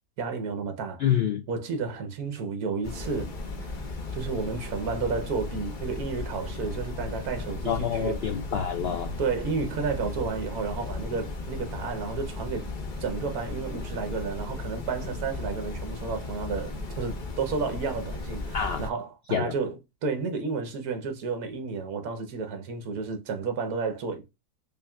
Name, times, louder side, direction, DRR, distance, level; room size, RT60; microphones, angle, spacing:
voice 1, 0.2-1.1 1.5-3.3 3.6-3.8 4.1-8.2 9.2-12.7 13.0-24.2, right 4 dB, 70° right, 1.3 m, -32 dB
voice 2, 1.0-1.4 7.6-9.2 18.5-18.9 19.3-19.5, left 8 dB, 80° left, 0.5 m, -27 dB
sound 1, 2.8-18.9, left 2 dB, 40° left, 0.8 m, -36 dB
5.3 x 2.6 x 2.3 m
omnidirectional pair, 1.7 m